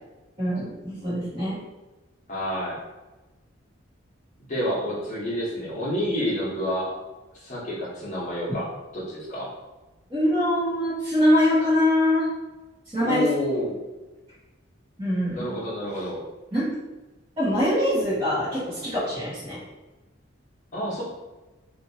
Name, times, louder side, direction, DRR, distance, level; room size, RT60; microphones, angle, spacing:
voice 1, 0.4-1.6 10.1-12.3 12.9-13.2 15.0-15.5 16.5-16.6 17.4-19.6, left 1 dB, 30° right, -14 dB, 1.3 m, -23 dB
voice 2, 2.3-2.8 4.5-6.9 7.4-8.7 8.9-9.5 13.0-13.8 15.3-16.2 20.7-21.0, equal, 40° left, -6 dB, 1.0 m, -28 dB
2.9 x 2.7 x 2.8 m, 1.1 s
head